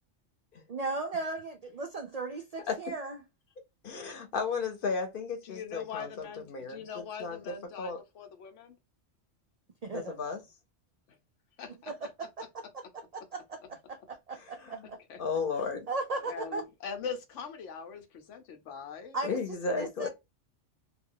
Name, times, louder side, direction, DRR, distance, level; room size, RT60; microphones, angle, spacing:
voice 1, 0.7-3.2 9.8-10.2 11.9-15.0 15.9-16.7 19.1-19.4 19.7-20.1, right 3 dB, 80° right, 0.3 m, -37 dB
voice 2, 3.8-8.0 9.9-10.4 14.3-14.9 15.2-15.9 19.2-20.1, left 5 dB, 50° left, 0.9 m, -34 dB
voice 3, 5.4-8.8 11.6-11.9 15.1-15.2 16.3-19.2, left 6 dB, 85° left, 1.0 m, -42 dB
2.3 x 2.3 x 3.6 m
omnidirectional pair, 1.2 m